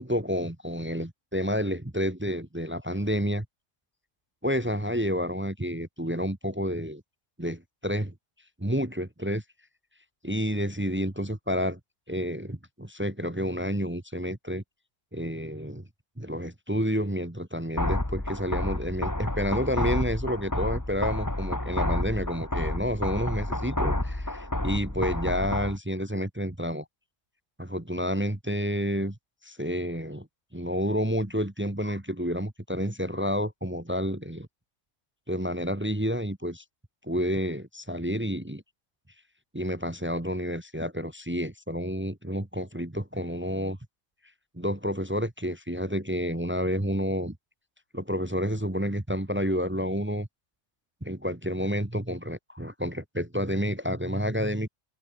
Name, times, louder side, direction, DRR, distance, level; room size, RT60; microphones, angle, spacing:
voice 1, 0.0-3.4 4.4-7.0 7.4-8.1 8.6-9.4 10.2-11.8 12.1-14.6 15.1-15.8 16.2-26.8 27.6-29.2 29.4-30.3 30.5-34.5 35.3-36.6 37.0-38.6 39.5-43.8 44.5-47.4 47.9-50.3 51.0-54.7, equal, 10° right, 1.3 m, -30 dB
sound 1, 17.8-25.8, left 1 dB, 15° left, 2.2 m, -30 dB
omnidirectional pair, 1.3 m